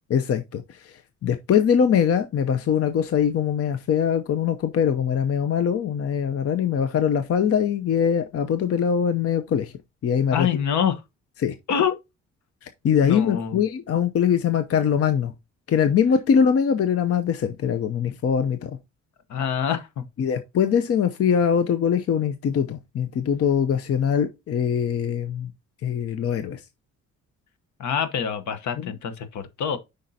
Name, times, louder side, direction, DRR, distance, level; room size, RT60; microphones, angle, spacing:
voice 1, 0.1-0.9 1.2-9.7 10.0-10.5 11.4-11.5 12.6-15.3 15.7-18.8 20.2-25.5 25.8-26.6 28.8-29.0, left 7 dB, 50° left, 0.7 m, -22 dB
voice 2, 10.3-11.0 11.7-12.0 13.0-13.6 19.3-20.0 27.8-29.8, left 8 dB, 70° left, 1.1 m, -25 dB
8.5 x 5.3 x 2.8 m
cardioid pair, 90°, 30 cm